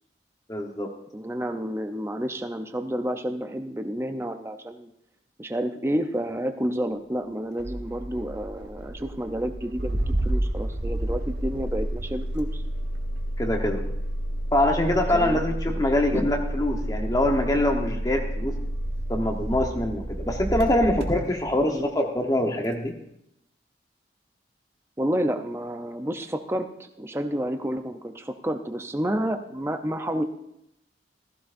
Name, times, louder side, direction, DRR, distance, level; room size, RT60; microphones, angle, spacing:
voice 1, 0.5-0.9 13.4-13.8 14.5-18.6 19.1-22.9, left 1 dB, 20° left, 2 dB, 1.0 m, -24 dB
voice 2, 1.1-4.9 5.4-10.0 10.2-12.6 15.1-15.5 15.8-16.3 21.7-21.9 25.0-30.2, equal, 15° right, 6 dB, 0.6 m, -30 dB
Engine starting, 7.6-21.7, right 1 dB, 75° right, 1.4 m, -30 dB
15.5 x 14.5 x 2.6 m, 0.81 s
head